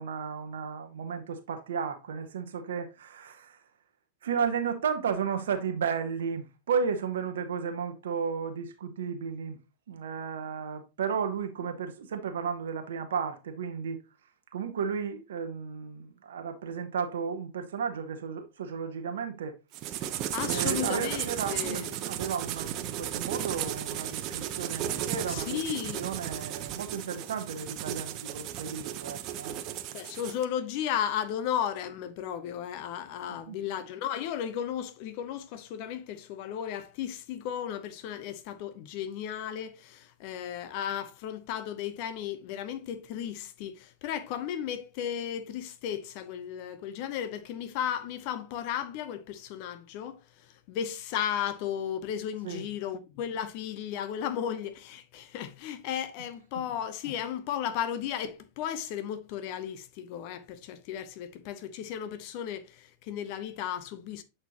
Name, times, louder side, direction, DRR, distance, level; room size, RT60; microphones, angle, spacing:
voice 1, 0.0-3.6 4.2-9.6 9.9-14.0 14.5-19.6 20.4-25.6 26.0-29.6 33.3-33.6 52.4-52.8 56.2-56.3 56.5-56.6, right 6 dB, 75° right, 0.9 m, -33 dB
sound 1, 19.7-30.4, right 11 dB, 45° right, 0.7 m, -35 dB
voice 2, 20.3-21.9 25.3-26.0 29.9-50.2 50.7-64.2, left 9 dB, 55° left, 0.8 m, -34 dB
7.9 x 4.4 x 2.9 m
hypercardioid pair, 95°, 0 cm